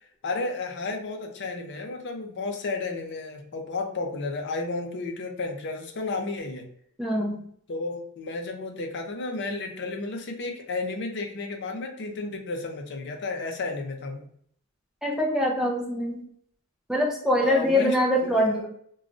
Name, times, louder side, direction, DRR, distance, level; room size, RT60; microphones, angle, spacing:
voice 1, 0.2-6.7 7.7-14.3 17.4-18.4, left 3 dB, 55° left, 4 dB, 0.5 m, -32 dB
voice 2, 7.0-7.4 15.0-16.2 16.9-18.7, left 1 dB, ahead, -1 dB, 0.4 m, -24 dB
3.0 x 2.3 x 2.5 m, 0.65 s
head